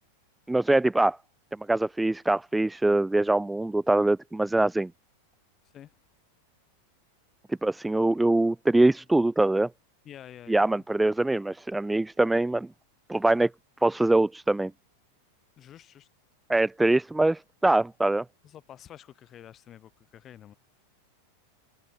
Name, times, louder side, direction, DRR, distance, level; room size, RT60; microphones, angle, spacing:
voice 1, 0.5-1.2 1.7-4.9 7.6-9.7 10.5-12.7 13.1-13.5 13.8-14.7 16.5-18.2, right 2 dB, 5° right, 0.3 m, -23 dB
voice 2, 10.0-10.8 13.1-13.3 15.6-16.1 18.4-20.5, left 11 dB, 30° left, 7.2 m, -49 dB
figure-of-eight pair, 90°, 0 cm